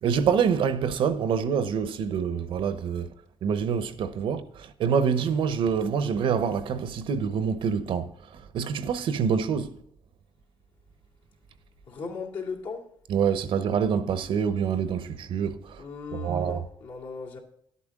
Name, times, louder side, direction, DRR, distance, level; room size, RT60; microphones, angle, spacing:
voice 1, 0.0-3.1 3.4-8.1 8.5-9.8 13.1-15.8 16.1-16.6, right 7 dB, 70° right, 0.8 m, -26 dB
voice 2, 11.9-12.8 15.8-17.4, left 5 dB, 70° left, 2.4 m, -37 dB
11.5 x 8.4 x 3.7 m
cardioid pair, 110°, 9 cm